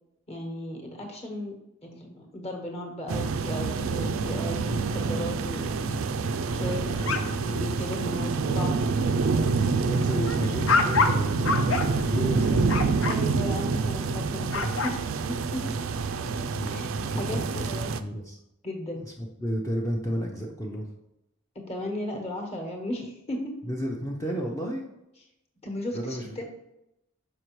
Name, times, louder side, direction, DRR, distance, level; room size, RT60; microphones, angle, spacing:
voice 1, 0.3-1.5 1.8-5.9 6.5-7.2 7.4-9.0 9.4-9.5 13.0-15.6 16.7-16.9 17.2-17.9 18.6-19.0 21.5-23.5 25.6-26.4, left 1 dB, 30° left, 1 dB, 1.2 m, -35 dB
sound 1, 3.1-18.0, right 4 dB, 80° right, 0.4 m, -27 dB
sound 2, 6.9-7.6 8.1-8.3 8.7-9.0 9.4-13.2 14.3-15.0, left 4 dB, 85° left, 0.6 m, -28 dB
voice 2, 7.0-7.5 9.7-12.7 16.5-18.4 18.9-20.9 23.7-24.8 25.9-26.4, equal, 15° left, -1 dB, 0.5 m, -32 dB
6.5 x 5.0 x 3.0 m, 0.89 s
head